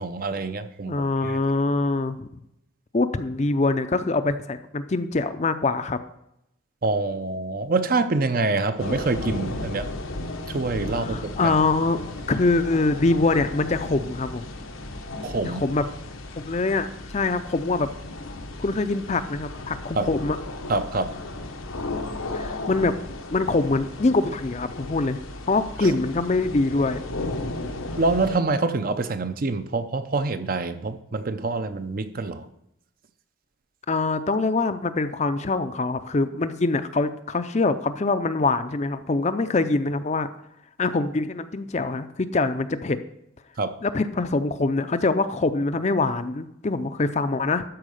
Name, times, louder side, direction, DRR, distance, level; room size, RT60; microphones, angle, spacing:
voice 1, 0.0-1.4 6.8-9.9 10.5-11.5 15.2-15.6 20.0-20.1 20.7-21.2 25.8-25.9 28.0-32.5 43.6-43.7, right 3 dB, 45° right, 10 dB, 0.6 m, -26 dB
voice 2, 0.9-2.3 2.9-6.0 11.0-12.0 12.3-14.4 15.4-15.8 16.4-16.9 17.1-17.9 18.6-20.4 22.3-22.9 23.3-25.2 25.5-27.0 33.9-40.3 40.8-43.0 43.8-47.6, left 3 dB, 35° left, 11 dB, 0.5 m, -24 dB
sound 1, 8.8-28.4, left 2 dB, 85° left, 1.1 m, -35 dB
12.5 x 4.7 x 6.4 m, 0.80 s
head